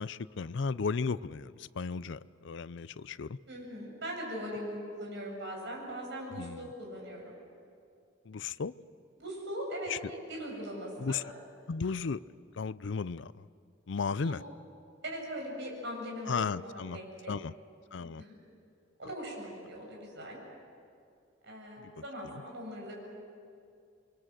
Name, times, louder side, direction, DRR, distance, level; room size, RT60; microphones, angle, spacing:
voice 1, 0.0-3.4 6.4-6.6 8.3-8.7 9.9-10.0 11.0-11.2 11.7-12.2 12.5-13.5 13.9-14.4 16.3-17.0 17.3-17.5 17.9-18.2 21.8-21.9, left 5 dB, 65° left, 17 dB, 0.5 m, -34 dB
voice 2, 3.5-7.3 9.2-11.2 14.2-14.4 15.0-17.3 18.0-18.4 19.0-20.4 21.4-23.1, equal, 65° right, -1 dB, 8.0 m, -40 dB
27.5 x 23.5 x 7.6 m, 2.4 s
head